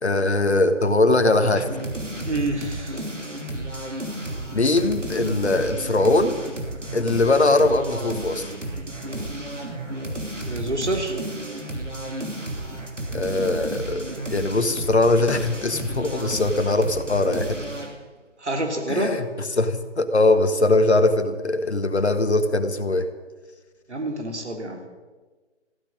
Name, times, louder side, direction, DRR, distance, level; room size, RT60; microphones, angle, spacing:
voice 1, 0.0-1.7 4.5-6.4 6.9-8.5 13.1-17.6 18.9-23.1, left 2 dB, 65° left, 9 dB, 1.6 m, -21 dB
sound 1, 1.4-18.0, right 1 dB, 85° right, 3.1 m, -32 dB
voice 2, 2.3-3.1 10.5-11.1 18.4-19.1 23.9-24.8, right 2 dB, 70° right, 3 dB, 3.2 m, -27 dB
15.0 x 10.0 x 9.1 m, 1.3 s
figure-of-eight pair, 155°, 36 cm